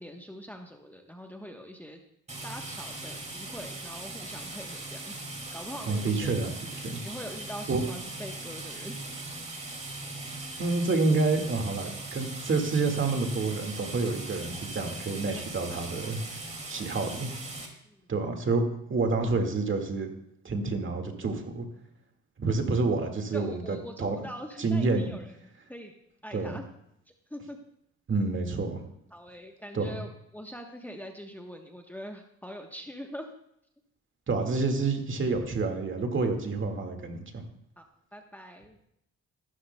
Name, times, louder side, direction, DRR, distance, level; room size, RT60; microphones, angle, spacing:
voice 1, 0.0-2.0 2.4-5.2 5.5-6.3 7.0-9.0 15.3-15.4 17.8-18.0 23.3-25.3 25.7-25.9 26.2-26.6 27.1-27.6 29.1-33.3 37.8-37.9 38.1-38.8, equal, 5° left, 3 dB, 1.1 m, -43 dB
sound 1, 2.3-17.7, right 2 dB, 25° right, 2.4 m, -40 dB
voice 2, 5.9-6.5 6.8-7.0 7.7-7.8 10.6-16.2 16.7-17.3 18.1-18.6 18.9-20.1 20.4-21.6 22.4-24.2 24.6-25.2 26.3-26.6 28.1-28.8 29.7-30.0 34.3-37.4, right 3 dB, 40° right, 4 dB, 1.9 m, -28 dB
14.5 x 12.0 x 2.2 m, 0.76 s
cardioid pair, 90°, 30 cm